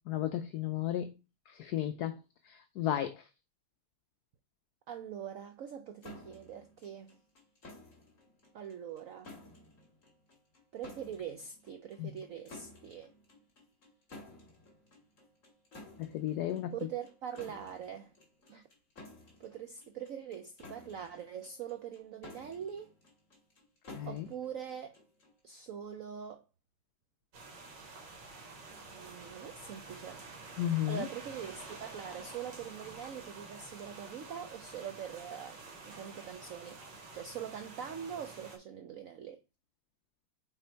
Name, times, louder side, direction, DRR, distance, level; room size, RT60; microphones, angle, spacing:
voice 1, 0.1-1.1 1.6-2.2 2.5-3.1 12.0-12.1 16.0-16.7 23.9-24.3 30.6-31.0, left 12 dB, 75° left, 0.9 m, -33 dB
voice 2, 4.9-7.2 8.5-9.3 10.7-13.1 16.7-18.1 18.5-18.6 19.4-22.9 24.0-25.0 25.4-26.4 28.7-30.2 30.9-36.8 37.1-39.4, right 8 dB, 90° right, 0.7 m, -43 dB
sound 1, 6.0-25.4, left 2 dB, 40° left, 2.6 m, -54 dB
sound 2, 27.3-38.6, right 3 dB, 65° right, 2.1 m, -49 dB
5.7 x 3.7 x 4.5 m
omnidirectional pair, 2.1 m